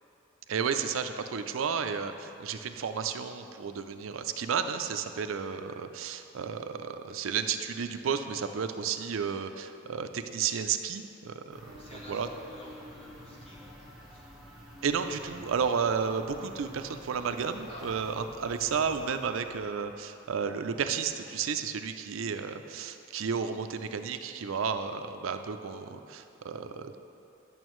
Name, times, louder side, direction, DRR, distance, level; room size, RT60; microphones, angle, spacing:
voice 1, 0.5-11.6 11.9-12.3 14.8-27.0, right 6 dB, 75° right, 8 dB, 0.4 m, -32 dB
sound 1, 11.5-19.8, equal, ahead, 1.3 m, -49 dB
voice 2, 11.6-12.2 12.5-14.2 17.7-17.8 22.1-22.2, left 1 dB, 25° left, -6 dB, 1.7 m, -51 dB
10.5 x 7.0 x 3.1 m, 2.6 s
head